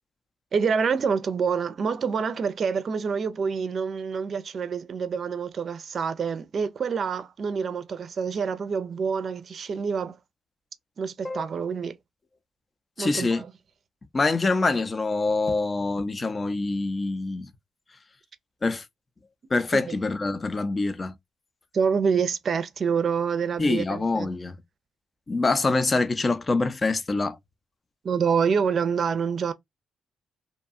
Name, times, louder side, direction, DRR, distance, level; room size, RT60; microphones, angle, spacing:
voice 1, 0.5-10.2 11.0-12.0 13.0-13.5 19.7-20.0 21.7-24.3 28.0-29.5, right 6 dB, 55° right, 0.5 m, -27 dB
voice 2, 13.0-13.4 14.1-17.5 18.6-18.8 19.5-21.2 23.6-24.5 25.3-27.4, left 3 dB, 35° left, 0.5 m, -25 dB
2.7 x 2.3 x 2.5 m
supercardioid pair, 55°, 0 cm